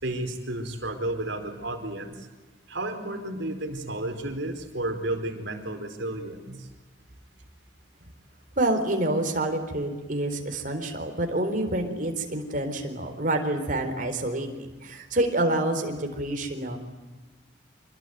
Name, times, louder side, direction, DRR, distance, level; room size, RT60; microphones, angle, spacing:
voice 1, 0.0-2.3 2.7-6.7, right 1 dB, 65° right, 5 dB, 4.4 m, -32 dB
voice 2, 8.6-16.8, right 1 dB, 45° right, 4 dB, 4.1 m, -27 dB
26.5 x 21.5 x 9.3 m, 1.3 s
head